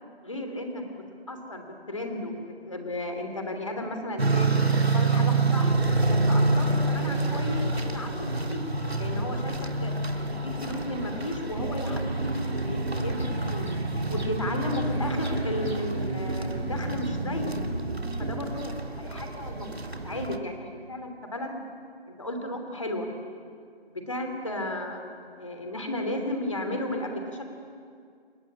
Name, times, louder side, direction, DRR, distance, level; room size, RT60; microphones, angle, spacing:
voice 1, 0.2-5.7 6.1-8.6 9.0-9.9 10.3-13.8 14.1-17.5 18.2-19.7 20.0-21.6 22.1-23.1 23.9-25.0 25.4-27.4, left 1 dB, 30° left, 4 dB, 3.1 m, -34 dB
sound 1, 4.2-20.4, right 3 dB, 80° right, 2.9 m, -28 dB
sound 2, 11.6-18.4, right 2 dB, 65° right, 4.5 m, -32 dB
29.5 x 21.5 x 8.7 m, 2.2 s
figure-of-eight pair, 180°, 31 cm